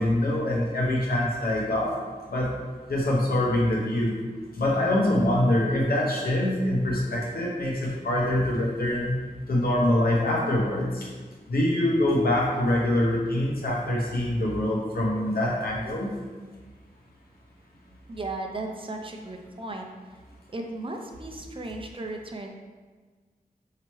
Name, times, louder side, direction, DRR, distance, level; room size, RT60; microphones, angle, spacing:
voice 1, 0.0-1.9 2.3-2.5 2.9-4.2 4.6-9.2 9.5-11.1 11.5-16.1, left 1 dB, 80° left, -3 dB, 0.9 m, -24 dB
voice 2, 18.1-19.9 20.5-22.5, right 2 dB, 35° right, 2 dB, 0.5 m, -35 dB
4.4 x 2.8 x 3.0 m, 1.4 s
wide cardioid pair, 105°, 15 cm